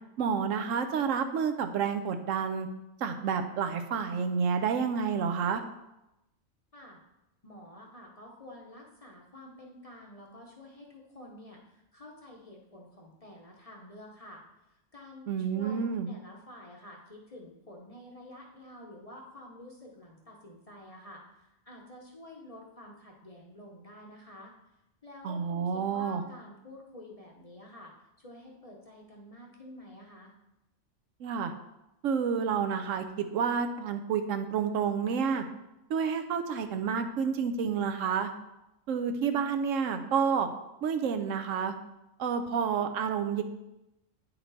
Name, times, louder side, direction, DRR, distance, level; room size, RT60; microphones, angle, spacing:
voice 1, 0.2-2.7 3.0-5.6 15.3-16.1 25.2-26.2 31.2-31.5 32.0-35.4 35.9-38.3 38.9-40.5 40.8-41.7 42.2-43.4, right 6 dB, 75° right, 7 dB, 0.9 m, -29 dB
voice 2, 7.4-14.4 14.9-24.5 25.0-30.3, left 1 dB, 30° left, -1 dB, 0.8 m, -49 dB
9.3 x 4.4 x 4.0 m, 0.93 s
omnidirectional pair, 1.4 m